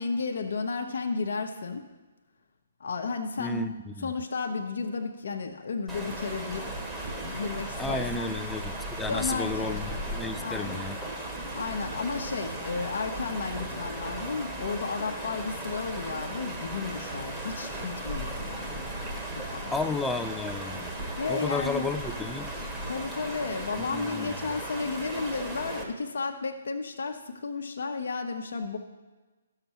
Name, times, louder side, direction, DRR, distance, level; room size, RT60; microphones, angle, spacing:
voice 1, 0.0-1.9 2.8-6.8 7.1-8.3 9.1-9.8 10.4-10.9 11.5-18.7 19.3-19.8 21.2-21.9 22.7-28.8, left 4 dB, 65° left, 4 dB, 0.9 m, -33 dB
voice 2, 3.4-4.1 7.8-8.7 9.0-11.0 19.7-20.9 21.3-22.5 23.9-24.3, left 3 dB, 5° left, 8 dB, 0.4 m, -32 dB
sound 1, 5.9-25.8, right 1 dB, 10° right, 1.4 m, -36 dB
12.5 x 6.7 x 3.0 m, 1.2 s
figure-of-eight pair, 135°, 0 cm